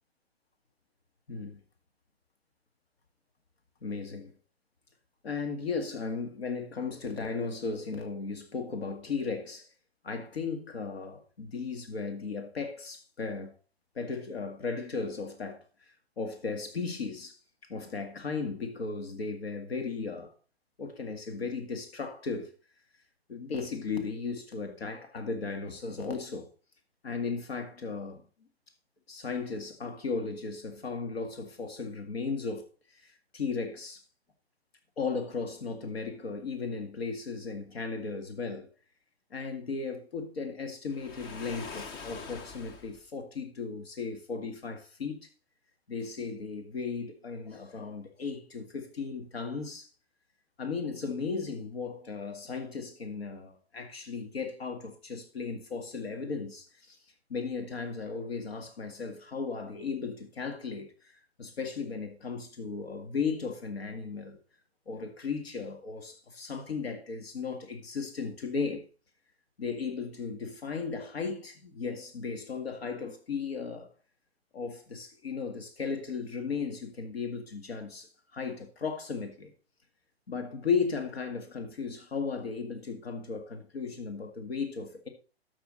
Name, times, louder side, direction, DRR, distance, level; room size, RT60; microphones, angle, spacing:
voice 1, 1.3-1.6 3.8-4.3 5.2-9.7 10.0-13.5 14.0-17.4 17.7-20.3 20.8-22.5 23.3-26.5 27.0-28.2 29.1-32.7 32.9-34.0 35.0-38.7 39.3-45.3 45.9-49.9 50.6-57.0 57.3-64.4 64.9-68.9 69.6-73.9 74.5-79.5 80.3-85.1, left 5 dB, 75° left, 2.1 m, -36 dB
Waves surf, 40.9-43.0, left 5 dB, 15° left, 0.4 m, -43 dB
12.0 x 7.6 x 4.0 m
hypercardioid pair, 125°, 31 cm